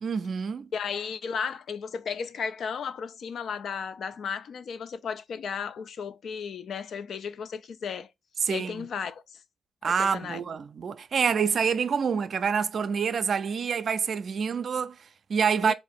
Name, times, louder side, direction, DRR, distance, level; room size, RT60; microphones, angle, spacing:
voice 1, 0.0-0.7 8.4-8.9 9.8-15.7, right 6 dB, 55° right, 0.4 m, -27 dB
voice 2, 0.7-8.1 8.5-9.4 9.8-10.4 15.6-15.7, left 6 dB, 65° left, 0.4 m, -34 dB
3.5 x 2.5 x 3.4 m
supercardioid pair, 65°, 0 cm